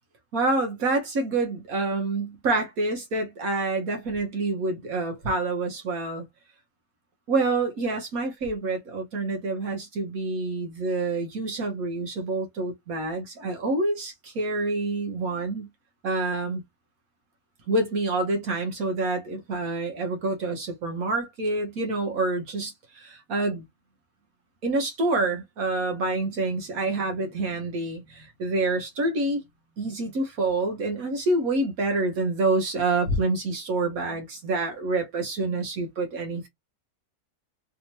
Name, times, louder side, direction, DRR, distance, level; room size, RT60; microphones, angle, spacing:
voice 1, 0.3-6.2 7.3-15.7 16.0-16.6 17.7-23.7 24.6-29.4 29.8-36.5, right 2 dB, 70° right, 1.4 m, -27 dB
3.4 x 3.0 x 2.8 m
omnidirectional pair, 1.6 m